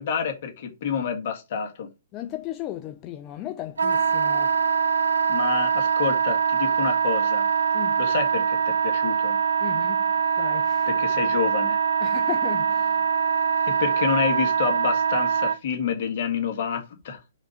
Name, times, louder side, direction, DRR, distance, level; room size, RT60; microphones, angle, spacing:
voice 1, 0.0-1.9 5.3-7.5 8.0-9.4 10.9-11.8 13.7-17.2, left 7 dB, 50° left, 1.9 m, -28 dB
voice 2, 2.1-4.6 7.7-8.0 9.6-10.1 10.4-10.9 12.0-13.1, left 13 dB, 30° left, 0.5 m, -35 dB
Wind instrument woodwind instrument, 3.8-15.6, right 6 dB, 80° right, 0.7 m, -23 dB
5.1 x 4.0 x 5.0 m
hypercardioid pair, 130°, 0 cm